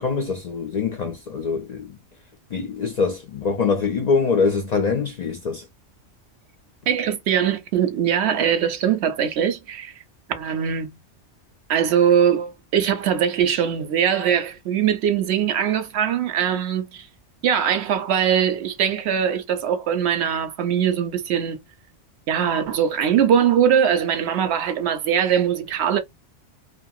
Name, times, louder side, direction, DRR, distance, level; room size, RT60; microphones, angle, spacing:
voice 1, 0.0-1.9 2.5-5.7, left 5 dB, 75° left, 0.3 m, -24 dB
voice 2, 6.9-9.9 10.3-11.0 11.7-17.1 17.4-21.6 22.3-26.0, right 8 dB, 65° right, 0.8 m, -21 dB
2.5 x 2.3 x 2.6 m
omnidirectional pair, 1.3 m